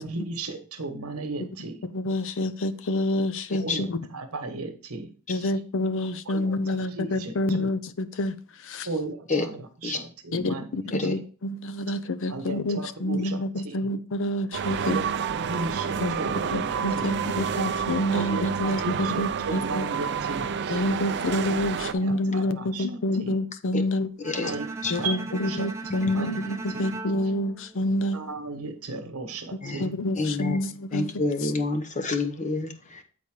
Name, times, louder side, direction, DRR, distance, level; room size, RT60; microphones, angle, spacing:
voice 1, 0.0-1.8 3.6-5.5 6.3-6.5 6.9-7.7 8.8-10.7 11.0-11.1 12.3-13.7 14.7-17.1 18.1-20.9 22.0-23.4 24.4-24.7 24.9-25.7 25.9-26.3 26.7-26.9 28.1-30.0, right 3 dB, 85° right, 1.2 m, -36 dB
voice 2, 1.8-4.0 5.3-9.0 10.3-15.0 16.0-19.9 20.7-24.1 24.9-28.2 29.8-31.1 31.4-31.5, left 1 dB, 65° left, 0.6 m, -28 dB
sound 1, 14.5-21.9, right 6 dB, 55° right, 0.5 m, -29 dB
Bowed string instrument, 24.2-28.4, right 3 dB, 15° right, 0.9 m, -38 dB
voice 3, 30.2-30.6 30.9-33.0, left 3 dB, 35° left, 0.9 m, -28 dB
8.2 x 4.2 x 4.8 m
head